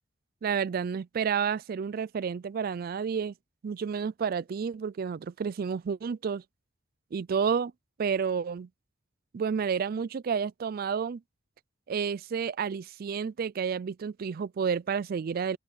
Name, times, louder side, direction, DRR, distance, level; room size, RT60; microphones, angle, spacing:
voice 1, 0.4-3.3 3.6-6.4 7.1-7.7 8.0-8.7 9.3-11.2 11.9-15.6, right 6 dB, 50° right, 0.4 m, -30 dB
open air
head